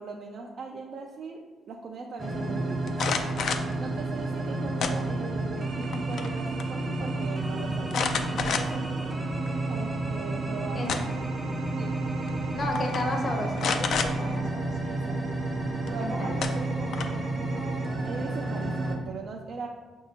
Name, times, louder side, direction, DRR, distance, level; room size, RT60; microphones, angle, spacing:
voice 1, 0.0-3.0 3.8-9.1 9.7-11.0 11.7-12.0 14.8-15.4 15.9-19.7, right 4 dB, 60° right, 1 dB, 0.4 m, -40 dB
sound 1, 2.2-19.0, right 2 dB, 35° right, 0.7 m, -31 dB
sound 2, 2.9-3.7 4.8-5.4 5.8-6.3 6.6-6.7 7.9-8.9 9.5-9.6 10.6-11.3 12.3-12.5 12.8-13.0 13.6-14.1 15.9-16.0 16.4-17.3, left 6 dB, 65° left, 0.3 m, -29 dB
voice 2, 12.5-14.7 16.0-16.4, left 1 dB, 40° left, 2 dB, 0.7 m, -33 dB
5.9 x 2.7 x 2.7 m, 1.4 s
cardioid pair, 90°, 0 cm